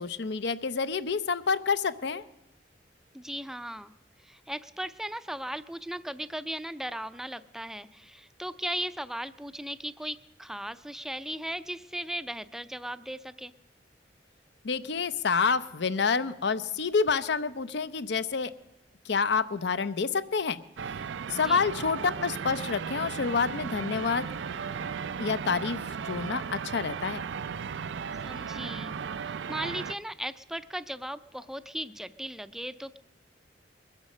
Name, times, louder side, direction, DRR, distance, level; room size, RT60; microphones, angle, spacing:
voice 1, 0.0-2.2 14.6-18.5 19.0-20.6 21.3-24.3 25.2-27.2, left 5 dB, 70° left, 13 dB, 0.6 m, -28 dB
voice 2, 3.1-3.9 4.2-13.5 21.4-21.6 28.2-33.0, right 1 dB, 5° right, 13 dB, 0.4 m, -37 dB
sound 1, 20.8-30.0, right 6 dB, 85° right, 0.4 m, -36 dB
22.0 x 8.2 x 6.5 m, 0.98 s
head